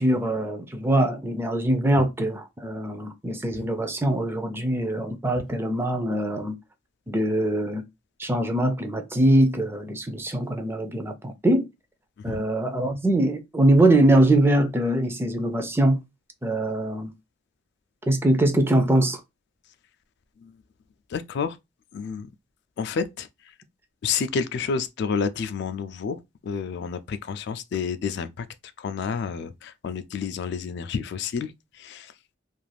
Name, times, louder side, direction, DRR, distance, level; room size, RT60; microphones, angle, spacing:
voice 1, 0.0-6.5 7.1-7.8 8.2-11.7 12.2-16.0 16.4-17.1 18.1-19.2, right 1 dB, 10° right, 0.4 m, -22 dB
voice 2, 21.1-21.6 21.9-22.3 22.8-23.3 24.0-28.5 28.8-32.1, left 6 dB, 60° left, 0.3 m, -30 dB
2.4 x 2.4 x 3.2 m
head